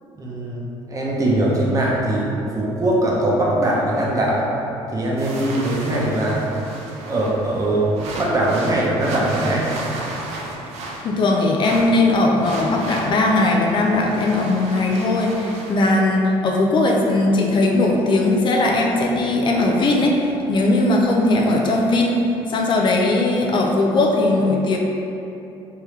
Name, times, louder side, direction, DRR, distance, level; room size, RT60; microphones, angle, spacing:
voice 1, 0.0-2.2 2.5-4.5 4.9-6.4 7.1-7.9 8.2-9.7, right 1 dB, 30° right, -4 dB, 0.8 m, -21 dB
sound 1, 5.2-15.7, right 2 dB, 70° right, 0.6 m, -34 dB
voice 2, 11.0-22.2 22.5-24.8, left 2 dB, 45° left, 0 dB, 0.5 m, -18 dB
3.4 x 3.3 x 3.2 m, 2.9 s
cardioid pair, 100°, 11 cm